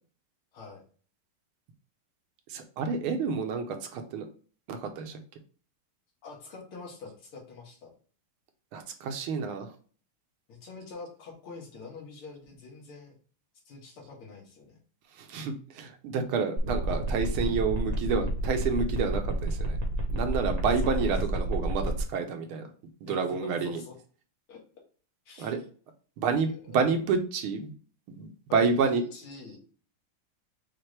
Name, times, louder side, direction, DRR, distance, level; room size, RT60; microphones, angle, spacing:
voice 1, 2.5-4.2 4.7-5.2 8.7-9.7 15.2-19.8 20.1-22.7 23.0-23.8 25.4-25.6 26.2-27.7 28.2-29.0, right 5 dB, 75° right, 6 dB, 1.5 m, -29 dB
voice 2, 6.2-7.9 10.5-13.2 13.7-14.8 20.8-21.4 23.1-23.9 24.5-24.6 25.3-25.5 26.7-26.8 28.5-29.6, left 4 dB, 75° left, -2 dB, 2.4 m, -45 dB
sound 1, 16.6-22.0, right 1 dB, 50° right, 1.1 m, -31 dB
5.8 x 2.5 x 3.2 m, 0.40 s
omnidirectional pair, 2.4 m